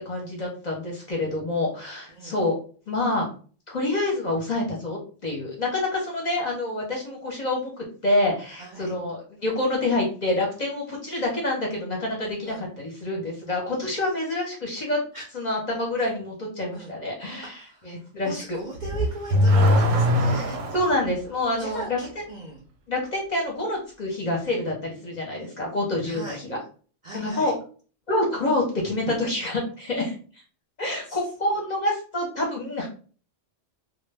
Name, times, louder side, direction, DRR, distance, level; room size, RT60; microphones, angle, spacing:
voice 1, 0.1-2.6 2.9-3.3 3.7-15.0 15.3-18.6 20.7-22.0 22.9-26.6 27.1-27.5 28.1-30.2 30.8-32.9, left 2 dB, 45° left, -1 dB, 0.6 m, -27 dB
voice 2, 2.1-2.5 8.6-8.9 12.4-12.6 15.1-15.3 16.0-16.1 16.7-16.9 17.5-20.6 21.6-22.7 26.0-26.4 27.0-27.5 31.1-31.2, right 2 dB, 60° right, -2 dB, 0.5 m, -38 dB
Car / Accelerating revving vroom, 18.8-21.0, left 1 dB, 90° right, 0.9 m, -20 dB
2.1 x 2.0 x 3.2 m, 0.41 s
omnidirectional pair, 1.3 m